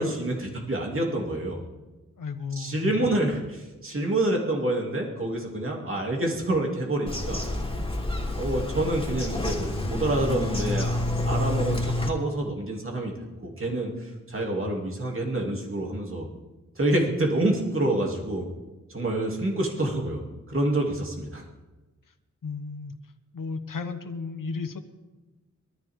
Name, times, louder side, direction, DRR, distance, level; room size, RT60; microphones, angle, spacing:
voice 1, 0.0-1.6 2.5-7.4 8.4-13.1 13.4-16.3 16.8-18.5 18.9-21.4, right 1 dB, 40° right, -1 dB, 2.8 m, -27 dB
voice 2, 2.2-3.1 22.4-23.0 23.3-24.8, left 4 dB, 85° left, 8 dB, 1.2 m, -34 dB
Bird vocalization bird call bird song, 7.1-12.1, left 1 dB, 15° left, 3.1 m, -28 dB
23.5 x 13.5 x 3.7 m, 1.2 s
wide cardioid pair, 95°, 32 cm